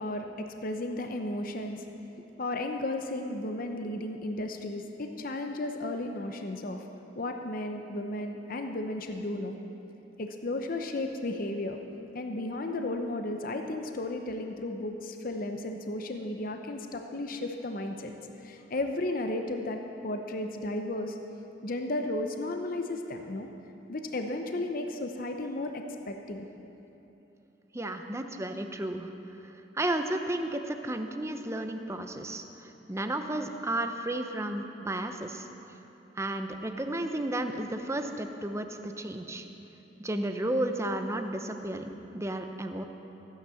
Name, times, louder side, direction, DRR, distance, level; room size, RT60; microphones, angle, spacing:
voice 1, 0.0-1.8 2.4-6.8 7.2-9.6 10.2-11.8 12.1-18.1 18.4-21.2 21.6-23.5 23.9-26.5, left 2 dB, 50° left, 5 dB, 0.8 m, -34 dB
voice 2, 27.7-29.1 29.4-35.5 36.2-39.4 40.0-42.8, right 1 dB, 15° right, 6 dB, 0.7 m, -33 dB
15.0 x 9.9 x 7.0 m, 3.0 s
head